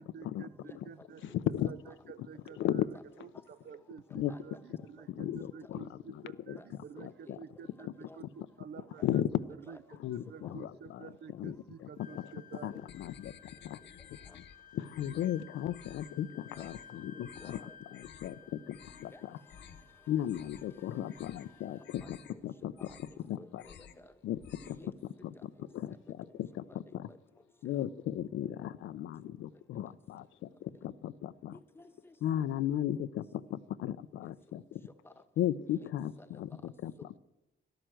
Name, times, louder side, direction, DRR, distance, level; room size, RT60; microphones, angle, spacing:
voice 1, 0.0-1.4 1.6-9.3 9.7-12.7, right 7 dB, 60° right, 18 dB, 0.5 m, -50 dB
voice 2, 0.6-1.4 1.9-2.0 2.9-3.0 4.3-4.6 5.6-5.7 6.5-6.7 7.0-7.4 8.0-8.2 9.0-9.4 9.7-9.8 10.4-10.5 12.7-12.8 14.3-14.4 15.1-15.3 16.5-16.7 17.1-17.7 19.1-19.2 21.6-22.4 22.8-23.0 23.4-24.1 24.6-24.9 25.3-25.7 27.1-27.2 27.7-27.9 31.5-32.1 35.0-35.1 35.7-35.9 36.2-36.3 37.0-37.1, left 2 dB, 10° left, 10 dB, 1.1 m, -55 dB
voice 3, 1.2-1.7 2.2-2.3 2.5-2.9 3.2-3.3 4.1-4.3 4.7-4.8 5.1-7.4 7.8-8.3 8.8-9.3 9.9-13.3 13.6-13.8 14.3-14.5 14.7-19.4 20.1-23.6 24.2-24.4 24.7-24.9 25.2-27.1 27.6-31.6 32.2-34.8 35.4-37.2, left 11 dB, 85° left, 14 dB, 0.6 m, -36 dB
Wind instrument woodwind instrument, 12.0-22.4, left 8 dB, 45° left, 0.6 m, -56 dB
sound 1, 12.9-14.6 14.9-15.4 15.7-16.1 16.5-16.9 17.2-17.6 17.9-18.3 18.6-19.1 19.5-19.8 20.2-20.8 21.1-21.5 21.8-22.3 22.7-23.2 23.5-24.0 24.3-24.9, left 8 dB, 70° left, 1.2 m, -54 dB
12.5 x 11.5 x 7.6 m, 0.98 s
cardioid pair, 115°, 19 cm